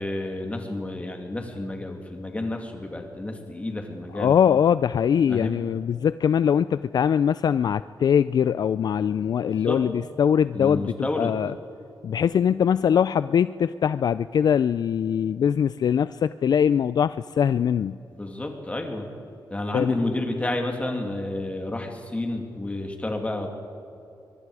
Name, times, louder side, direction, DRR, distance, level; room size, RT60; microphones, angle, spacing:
voice 1, 0.0-4.4 5.3-5.6 9.4-9.9 10.5-11.4 18.1-19.1 19.5-23.5, left 2 dB, 15° left, 3 dB, 2.4 m, -30 dB
voice 2, 4.1-11.5 12.0-18.0 19.7-19.9, left 8 dB, 55° left, 15 dB, 0.3 m, -22 dB
23.0 x 23.0 x 4.9 m, 2.9 s
wide cardioid pair, 165°, 8 cm